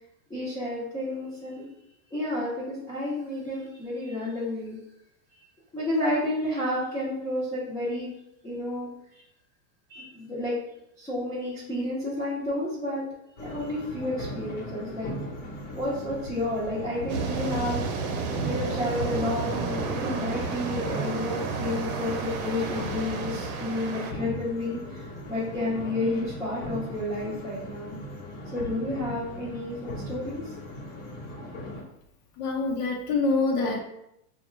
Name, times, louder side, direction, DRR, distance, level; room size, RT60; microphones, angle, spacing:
voice 1, 0.3-1.6 2.1-4.8 5.3-5.4 5.7-8.1 8.4-9.2 9.9-10.5 11.0-13.0 13.4-15.1 15.7-17.8 18.4-28.0 28.5-30.5, left 1 dB, 5° left, -10 dB, 0.6 m, -31 dB
sound 1, 13.4-31.8, equal, 50° left, 1.1 m, -38 dB
sound 2, 17.1-24.1, right 5 dB, 65° right, 0.7 m, -31 dB
voice 2, 32.4-33.8, left 3 dB, 75° left, 1 dB, 0.9 m, -25 dB
4.2 x 2.4 x 3.0 m, 0.79 s
supercardioid pair, 165°, 45 cm